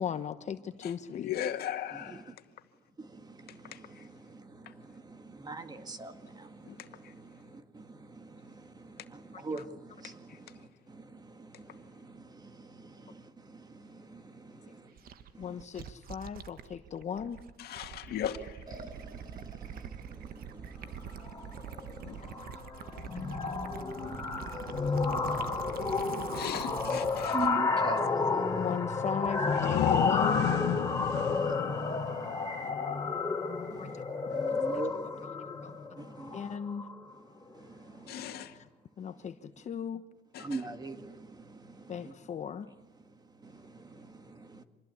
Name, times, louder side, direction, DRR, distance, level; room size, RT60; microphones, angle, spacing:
voice 1, 0.0-1.3 9.3-9.7 15.4-17.4 22.4-22.5 25.3-25.5 26.3-26.7 28.6-30.5 33.8-33.9 35.2-36.0 36.3-36.9 38.5-38.6 39.0-40.0 41.9-42.7, left 7 dB, 45° left, 1.2 m, -37 dB
voice 2, 0.8-2.2 6.7-6.8 17.6-18.6 22.0-22.2 26.3-27.4 38.1-38.5 40.3-40.6, left 10 dB, 70° left, 2.0 m, -37 dB
voice 3, 1.9-2.3 3.0-14.9 15.3-15.6 18.7-22.5 22.9-23.4 23.8-26.5 27.3-28.7 31.3-32.7 33.7-34.0 34.3-35.3 36.0-36.6 37.5-38.5 40.4-42.1 43.4-44.6, right 3 dB, 25° right, 2.0 m, -45 dB
Gurgling / Liquid, 15.0-27.5, right 8 dB, 60° right, 1.4 m, -44 dB
sound 1, 21.1-21.4 21.7-22.0 22.2-37.1, left 4 dB, 20° left, 3.6 m, -31 dB
sound 2, 29.2-32.8, left 13 dB, 90° left, 1.0 m, -33 dB
26.5 x 21.5 x 8.5 m
cardioid pair, 110°, 17 cm